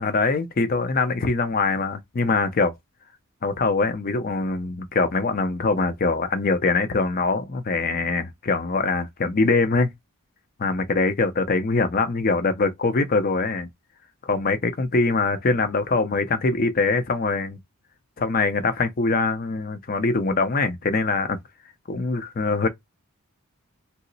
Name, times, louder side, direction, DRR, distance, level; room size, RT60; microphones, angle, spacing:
voice 1, 0.0-2.7 3.4-9.9 10.6-13.7 14.2-17.6 18.2-21.4 21.9-22.7, left 3 dB, 40° left, 0.5 m, -23 dB
2.9 x 2.0 x 4.0 m
head